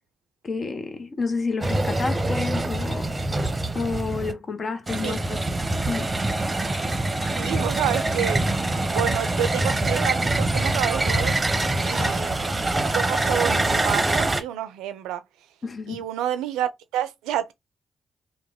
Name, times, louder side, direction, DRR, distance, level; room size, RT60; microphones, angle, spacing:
voice 1, 0.4-3.1 3.7-5.4 5.9-6.1 15.6-16.0, left 4 dB, 50° left, 0.7 m, -30 dB
sound 1, 1.6-4.3 4.9-14.4, right 2 dB, 30° right, 0.7 m, -24 dB
voice 2, 7.4-8.4 8.9-11.3 11.8-12.3 12.9-15.2 15.9-17.5, right 10 dB, 85° right, 0.4 m, -28 dB
3.0 x 2.2 x 3.5 m
hypercardioid pair, 40°, 0 cm